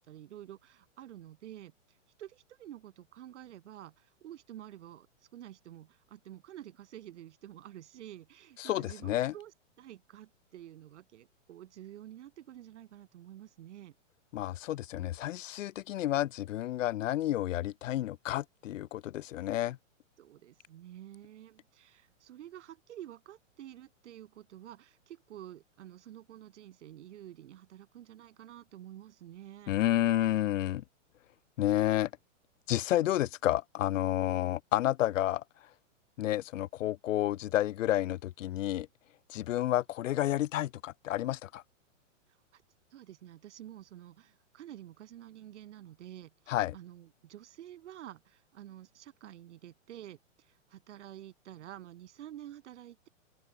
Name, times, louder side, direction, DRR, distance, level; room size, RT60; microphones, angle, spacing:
voice 1, 0.0-14.0 20.2-29.7 42.5-42.6 42.9-53.1, right 12 dB, 65° right, 2.4 m, -49 dB
voice 2, 8.6-9.3 14.3-19.8 29.7-30.8 31.6-32.1 32.7-35.4 36.2-38.9 39.3-41.6 46.5-46.7, left 13 dB, 75° left, 0.7 m, -30 dB
open air
hypercardioid pair, 155°, 38 cm